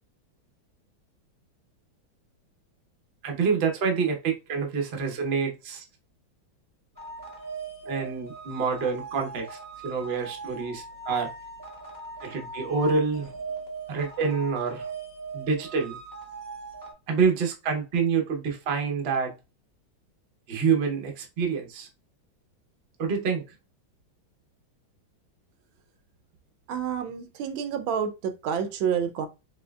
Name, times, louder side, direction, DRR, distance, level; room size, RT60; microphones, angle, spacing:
voice 1, 3.2-5.8 7.9-11.3 12.2-13.3 13.9-14.9 15.3-16.0 17.1-19.3 20.5-21.9 23.0-23.4, right 5 dB, 55° right, 0.7 m, -27 dB
sound 1, 7.0-16.9, right 3 dB, 15° left, 0.7 m, -40 dB
voice 2, 26.7-29.3, right 7 dB, 80° right, 1.3 m, -29 dB
4.2 x 3.3 x 2.3 m
omnidirectional pair, 2.2 m